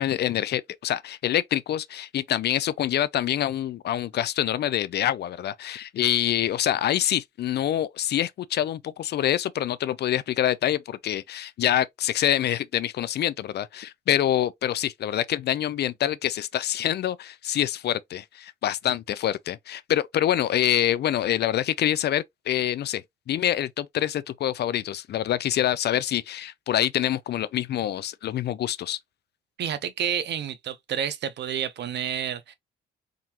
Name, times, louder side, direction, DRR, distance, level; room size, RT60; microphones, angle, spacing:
voice 1, 0.0-29.0, left 11 dB, 55° left, 0.4 m, -26 dB
voice 2, 29.6-32.5, right 9 dB, 60° right, 0.7 m, -29 dB
3.7 x 2.7 x 2.8 m
cardioid pair, 90°, 20 cm